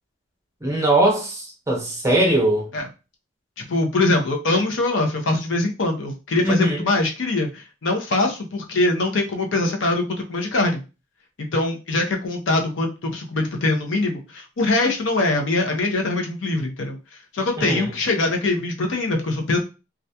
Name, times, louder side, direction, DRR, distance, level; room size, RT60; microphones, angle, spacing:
voice 1, 0.6-2.7 6.4-6.8 17.6-17.9, right 1 dB, 15° right, 0.7 m, -20 dB
voice 2, 3.7-10.8 11.5-17.0 17.3-19.6, left 2 dB, 85° left, 0.6 m, -22 dB
2.3 x 2.2 x 2.7 m
head